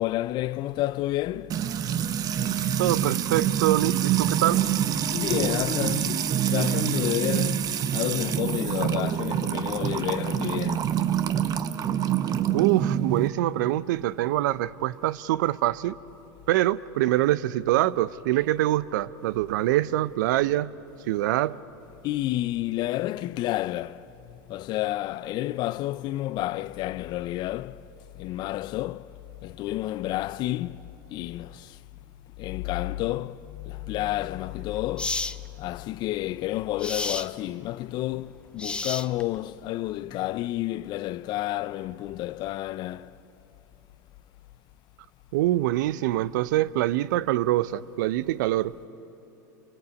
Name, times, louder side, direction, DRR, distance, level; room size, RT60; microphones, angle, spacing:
voice 1, 0.0-1.5 5.1-7.6 7.9-10.9 22.0-24.0 24.5-27.8 28.2-29.1 29.4-30.8 31.1-31.7 32.4-35.2 35.6-43.1, left 15 dB, 45° left, 0.5 m, -30 dB
Music / Water tap faucet / Trickle dribble, 1.5-13.3, right 9 dB, 40° right, 1.0 m, -26 dB
voice 2, 2.8-4.7 12.5-16.0 16.5-20.7 21.1-21.6 45.3-48.7, right 15 dB, 70° right, 0.7 m, -24 dB
sound 1, 34.1-34.2 35.0-35.4 36.8-37.3 38.6-39.4, left 3 dB, 10° left, 0.6 m, -31 dB
28.5 x 24.0 x 8.3 m
hypercardioid pair, 100°, 10 cm